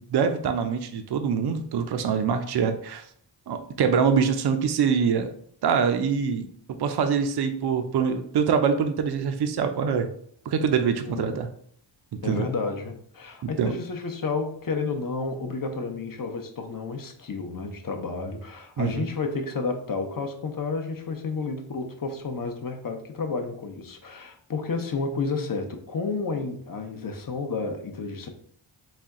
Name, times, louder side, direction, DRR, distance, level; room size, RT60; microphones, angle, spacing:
voice 1, 0.1-3.0 3.5-5.3 5.6-10.1 10.5-11.5 12.2-12.5 13.4-13.7 18.8-19.1, right 6 dB, 55° right, 7 dB, 0.5 m, -24 dB
voice 2, 11.0-11.4 12.2-28.3, left 4 dB, 45° left, 5 dB, 0.7 m, -31 dB
4.1 x 2.2 x 3.6 m, 0.62 s
cardioid pair, 60°, 47 cm